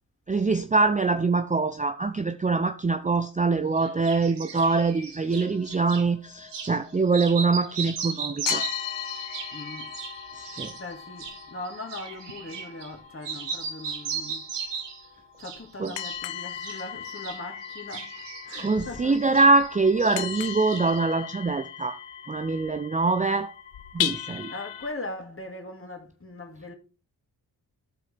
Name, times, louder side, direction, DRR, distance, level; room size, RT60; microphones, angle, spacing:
voice 1, 0.3-8.7 10.3-10.7 15.8-15.9 18.6-22.0 22.3-23.5 23.9-24.5, right 3 dB, 15° right, 0.5 m, -24 dB
sound 1, 3.8-6.1 6.5-6.8 7.1-13.0 13.2-15.1 15.4-16.2 16.5-19.7 20.0-21.0, right 6 dB, 70° right, 1.4 m, -37 dB
sound 2, 5.3-8.1 8.4-24.9, left 11 dB, 85° left, 0.6 m, -38 dB
voice 2, 9.5-9.9 10.5-14.5 15.4-19.4 24.5-26.7, left 2 dB, 30° left, 2.4 m, -40 dB
13.5 x 4.6 x 3.4 m
supercardioid pair, 40°, 44 cm